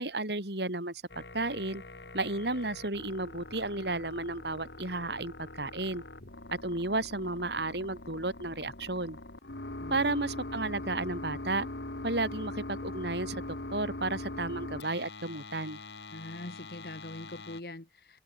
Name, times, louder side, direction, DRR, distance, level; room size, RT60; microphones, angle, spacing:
voice 1, 0.0-1.8 2.1-6.0 6.6-9.2 9.9-11.7 12.0-13.4 13.7-15.8, right 2 dB, 75° right, 5.0 m, -33 dB
sound 1, 1.1-17.6, left 2 dB, 80° left, 2.3 m, -42 dB
voice 2, 16.1-18.2, left 1 dB, 60° left, 1.8 m, -43 dB
open air
head